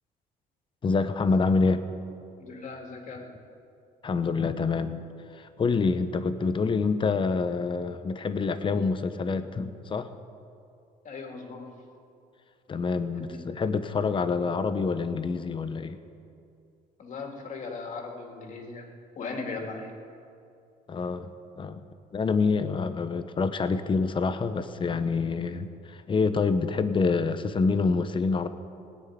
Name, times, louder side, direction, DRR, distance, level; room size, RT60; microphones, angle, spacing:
voice 1, 0.8-1.8 4.0-5.0 5.3-10.1 12.7-16.0 20.9-21.3 21.6-21.8 22.1-28.5, left 4 dB, 30° left, 10 dB, 0.8 m, -26 dB
voice 2, 2.4-3.4 11.0-11.8 13.2-13.4 17.0-18.9 19.2-19.9, left 4 dB, 50° left, 2 dB, 2.4 m, -38 dB
19.0 x 6.4 x 9.4 m, 2.5 s
cardioid pair, 110°, 17 cm